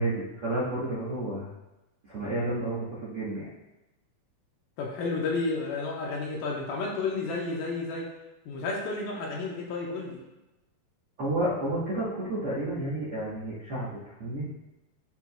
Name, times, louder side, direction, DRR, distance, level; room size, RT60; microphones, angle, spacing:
voice 1, 0.0-1.5 2.0-3.5 11.2-14.5, right 1 dB, 65° right, -9 dB, 1.4 m, -31 dB
voice 2, 4.8-8.0 8.5-10.2, left 3 dB, 75° left, -1 dB, 2.4 m, -31 dB
11.5 x 4.6 x 2.3 m, 1.0 s
omnidirectional pair, 4.4 m